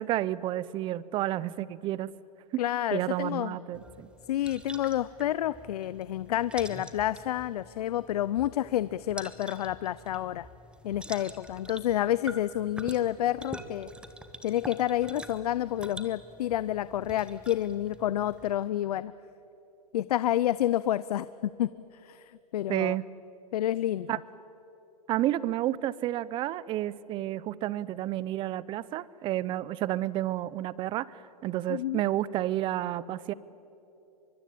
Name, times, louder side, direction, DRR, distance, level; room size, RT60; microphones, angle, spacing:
voice 1, 0.0-2.1 2.5-2.6 2.9-4.1 22.7-23.0 24.1-24.2 25.1-33.3, right 14 dB, 25° right, 20 dB, 0.6 m, -30 dB
voice 2, 2.6-3.6 4.3-10.5 10.8-13.9 14.4-19.1 19.9-23.0 23.5-24.2 31.7-32.0, left 12 dB, 75° left, 17 dB, 0.6 m, -29 dB
sound 1, 3.7-18.6, right 1 dB, 5° right, 1.2 m, -47 dB
24.0 x 23.0 x 8.6 m, 3.0 s
hypercardioid pair, 140°, 20 cm